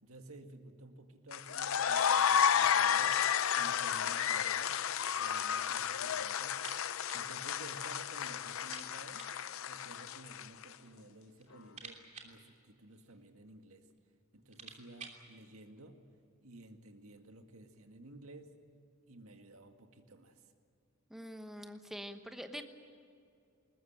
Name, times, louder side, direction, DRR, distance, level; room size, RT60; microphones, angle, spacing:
voice 1, 0.0-3.2 3.5-4.8 5.2-6.6 7.1-9.3 9.7-13.9 14.3-16.0 16.4-18.6 19.1-20.5, right 2 dB, 75° right, 5 dB, 2.0 m, -54 dB
sound 1, 1.3-10.6, left 8 dB, 70° left, 0.6 m, -32 dB
sound 2, 6.5-7.3 7.5-7.6 8.0-8.1 8.6-9.5 10.4-11.0 11.3-13.3 14.0-14.1 14.3-15.3, right 5 dB, 35° right, 3.0 m, -52 dB
voice 2, 21.1-22.6, equal, ahead, 6 dB, 1.1 m, -45 dB
21.0 x 20.5 x 9.0 m, 2.5 s
head